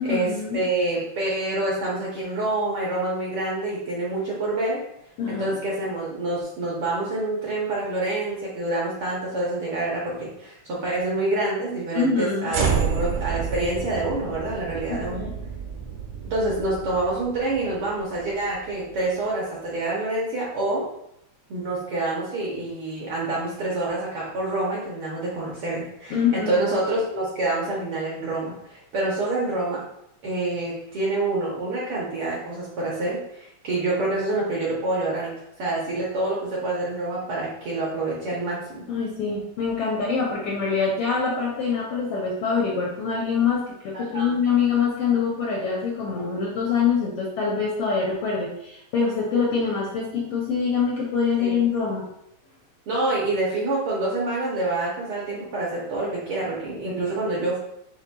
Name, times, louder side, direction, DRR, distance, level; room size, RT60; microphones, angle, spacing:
voice 1, 0.0-0.6 5.2-5.6 11.9-12.5 14.9-15.3 26.1-26.6 38.9-52.0 56.8-57.0, left 5 dB, 75° left, -3 dB, 1.4 m, -25 dB
voice 2, 0.5-4.8 5.3-15.2 16.2-20.8 21.5-29.8 30.2-35.3 35.6-38.8 43.9-44.3 51.4-51.6 52.9-57.6, right 2 dB, 65° right, -5 dB, 1.4 m, -27 dB
sound 1, 12.5-18.8, right 6 dB, 85° right, 2.3 m, -30 dB
6.9 x 3.2 x 2.3 m, 0.77 s
omnidirectional pair, 3.4 m